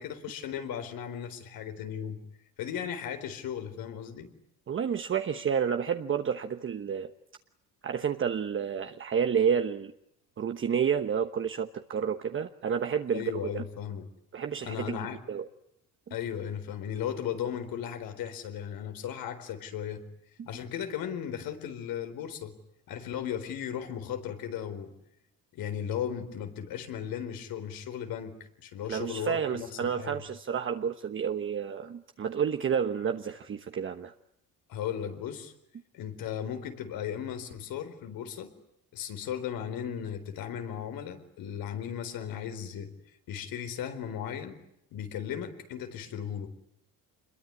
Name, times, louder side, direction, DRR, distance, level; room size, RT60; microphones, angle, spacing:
voice 1, 0.0-2.2 2.6-4.3 13.1-14.1 14.6-15.2 16.1-20.0 20.4-22.6 22.9-24.9 25.5-30.2 34.7-35.5 35.9-38.5 38.9-42.9 43.3-44.6 44.9-46.5, left 9 dB, 80° left, 8 dB, 4.2 m, -36 dB
voice 2, 4.7-7.1 7.8-9.9 10.4-13.6 14.3-15.0 15.3-15.5 16.1-16.2 28.9-34.1, right 7 dB, 35° right, 7 dB, 1.1 m, -30 dB
27.0 x 22.0 x 9.7 m, 0.77 s
cardioid pair, 135°, 35 cm